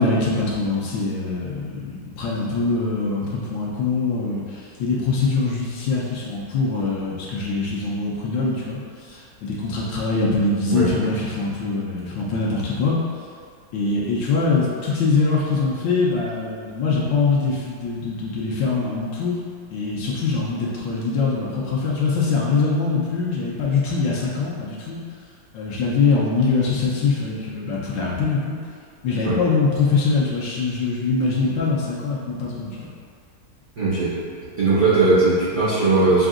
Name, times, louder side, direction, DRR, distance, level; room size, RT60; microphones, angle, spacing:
voice 1, 0.0-13.0 13.7-19.4 19.7-25.0 25.5-28.5 29.0-32.9, left 4 dB, 70° left, -5 dB, 1.2 m, -23 dB
voice 2, 33.8-34.1 34.6-36.3, right 3 dB, 55° right, -11 dB, 0.8 m, -18 dB
5.8 x 2.6 x 2.4 m, 2.1 s
omnidirectional pair, 2.3 m